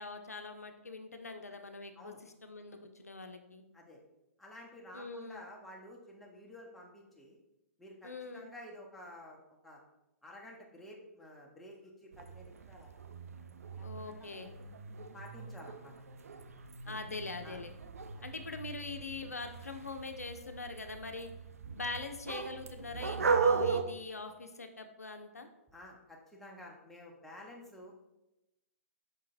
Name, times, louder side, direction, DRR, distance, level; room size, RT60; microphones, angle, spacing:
voice 1, 0.0-3.6 4.9-5.4 8.0-8.5 13.8-14.5 16.9-17.7 18.2-21.3 21.7-25.5, left 3 dB, 85° left, 6 dB, 0.4 m, -43 dB
voice 2, 4.4-7.4 7.8-9.4 9.6-9.8 10.2-13.0 13.8-14.8 15.1-16.1 16.8-17.0 17.4-17.6 18.1-18.2 25.7-27.9, left 1 dB, 5° left, -3 dB, 0.7 m, -52 dB
sound 1, 12.1-23.8, right 5 dB, 70° right, 0.4 m, -37 dB
5.3 x 3.7 x 2.5 m, 0.95 s
figure-of-eight pair, 120°, 8 cm